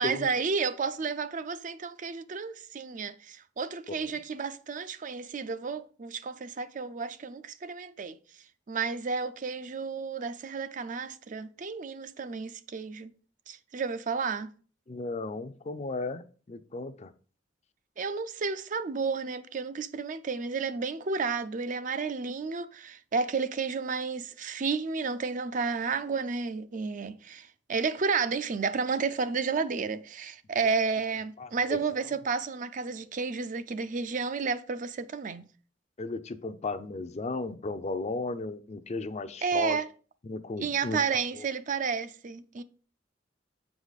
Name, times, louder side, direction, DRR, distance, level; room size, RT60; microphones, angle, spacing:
voice 1, 0.0-8.2 8.7-13.1 13.5-14.5 18.0-35.4 39.4-39.9 40.6-42.6, right 5 dB, 45° right, 0.5 m, -31 dB
voice 2, 14.9-17.1 31.4-31.8 36.0-39.8 40.2-41.5, left 3 dB, 35° left, 0.5 m, -35 dB
7.9 x 4.9 x 4.0 m
head